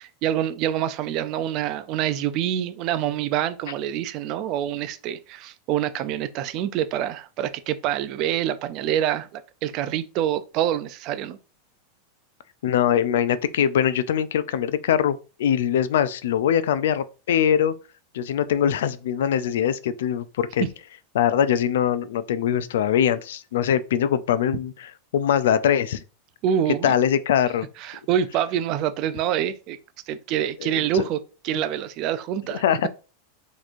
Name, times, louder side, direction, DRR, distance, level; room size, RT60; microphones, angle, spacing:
voice 1, 0.2-11.4 26.4-26.9 27.8-29.8 30.1-32.6, right 10 dB, 40° right, 0.3 m, -26 dB
voice 2, 12.6-17.7 18.1-20.7 21.1-26.0 26.8-27.7 30.6-31.0 32.5-32.9, left 9 dB, 85° left, 0.3 m, -22 dB
4.1 x 3.0 x 2.5 m
supercardioid pair, 160°, 0 cm